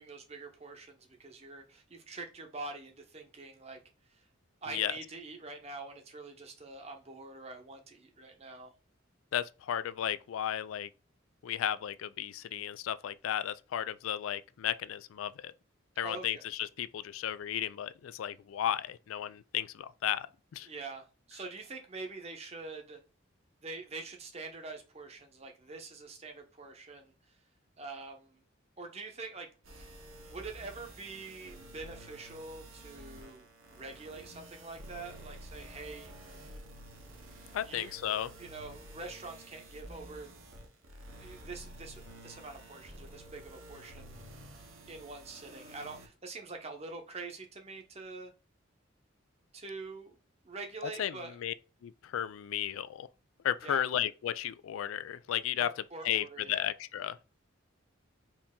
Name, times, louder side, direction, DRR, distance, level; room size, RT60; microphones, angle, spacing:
voice 1, 0.0-3.8 4.1-4.2 4.6-8.7 16.0-16.4 20.6-23.0 23.6-27.4 27.8-28.4 28.8-30.0 30.3-36.1 37.6-38.0 38.4-40.3 41.0-44.2 44.9-48.3 49.5-50.1 50.4-51.4 53.6-53.8 55.6-56.6, right 3 dB, 30° right, 0.8 m, -45 dB
voice 2, 9.3-10.9 11.4-15.5 16.0-20.3 20.5-20.7 37.5-38.3 50.8-51.5 51.8-53.1 53.4-55.7 56.0-57.2, left 10 dB, 85° left, 0.3 m, -34 dB
sound 1, 29.6-46.1, right 1 dB, 80° right, 1.1 m, -50 dB
4.4 x 2.7 x 3.6 m
head